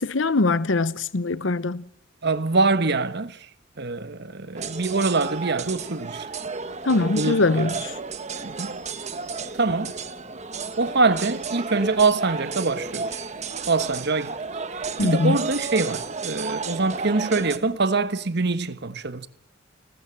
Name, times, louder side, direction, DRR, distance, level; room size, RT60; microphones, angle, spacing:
voice 1, 0.0-1.9 6.8-7.9 15.0-15.4, left 3 dB, 70° left, 0.9 m, -22 dB
voice 2, 2.2-3.5 3.8-6.3 7.0-7.4 8.4-8.8 9.5-9.9 10.8-13.2 13.7-14.3 15.0-19.3, right 3 dB, 60° right, 1.2 m, -24 dB
sound 1, 4.5-17.6, right 4 dB, 35° right, 1.3 m, -32 dB
29.0 x 13.0 x 7.6 m
head